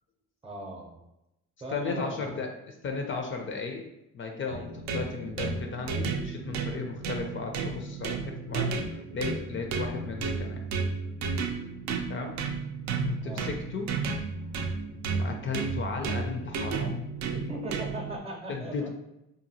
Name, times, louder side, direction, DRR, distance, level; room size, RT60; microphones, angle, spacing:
voice 1, 0.4-1.0 1.6-2.4 13.2-13.5 17.3-18.9, right 1 dB, 20° right, 1 dB, 0.6 m, -38 dB
voice 2, 1.7-2.5 2.8-3.8 4.1-10.7 12.1-12.4 13.0-13.9 15.1-17.0 18.5-18.9, left 4 dB, 40° left, 3 dB, 0.4 m, -35 dB
sound 1, 4.5-18.2, right 4 dB, 65° right, 0.4 m, -33 dB
2.8 x 2.4 x 2.7 m, 0.88 s
cardioid pair, 90°, 30 cm